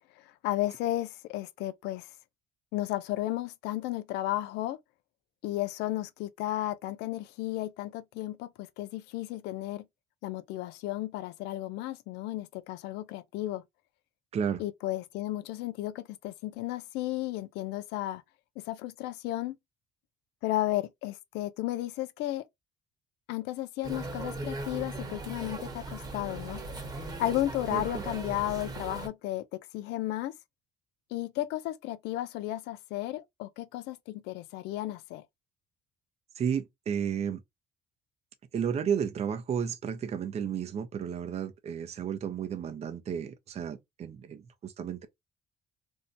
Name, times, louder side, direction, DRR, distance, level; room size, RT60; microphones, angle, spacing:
voice 1, 0.4-2.1 2.7-4.8 5.4-9.8 10.2-13.6 14.6-18.2 18.6-19.6 20.4-22.4 23.3-26.6 27.2-29.4 29.7-30.3 31.1-35.2, left 15 dB, 90° left, 0.4 m, -33 dB
sound 1, 23.8-29.1, right 2 dB, 25° right, 1.1 m, -38 dB
voice 2, 27.7-28.0 36.4-37.4 38.5-45.1, right 7 dB, 40° right, 0.6 m, -32 dB
2.7 x 2.1 x 3.8 m
cardioid pair, 110°, 17 cm